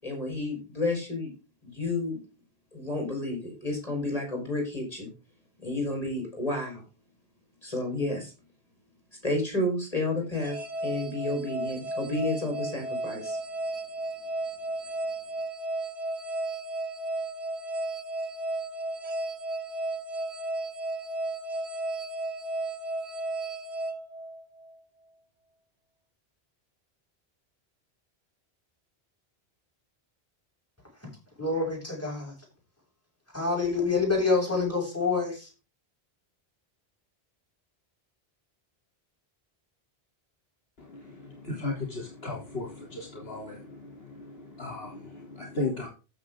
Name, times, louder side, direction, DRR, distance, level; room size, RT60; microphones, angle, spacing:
voice 1, 0.0-1.3 1.6-2.2 2.7-5.1 5.6-6.8 7.6-8.3 9.2-10.6 10.8-13.4, left 2 dB, 35° left, 5.2 m, -31 dB
sound 1, 10.3-24.7, right 2 dB, 90° right, 2.0 m, -34 dB
voice 2, 31.4-32.4 33.3-35.5, left 4 dB, 15° left, 7.4 m, -27 dB
voice 3, 40.8-45.9, left 2 dB, 65° left, 3.6 m, -36 dB
14.5 x 6.7 x 3.8 m
omnidirectional pair, 1.1 m